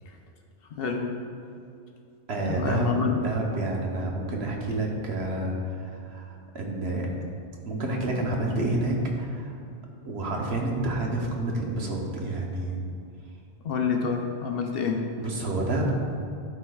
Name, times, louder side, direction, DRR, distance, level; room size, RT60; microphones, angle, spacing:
voice 1, 0.7-1.2 2.6-3.2 13.6-15.0, left 5 dB, 60° left, 3 dB, 0.8 m, -27 dB
voice 2, 2.3-2.9 3.2-7.1 7.7-9.5 10.0-12.8 15.2-15.9, right 2 dB, 65° right, 0 dB, 1.1 m, -29 dB
13.0 x 4.4 x 2.3 m, 2.5 s
omnidirectional pair, 1.2 m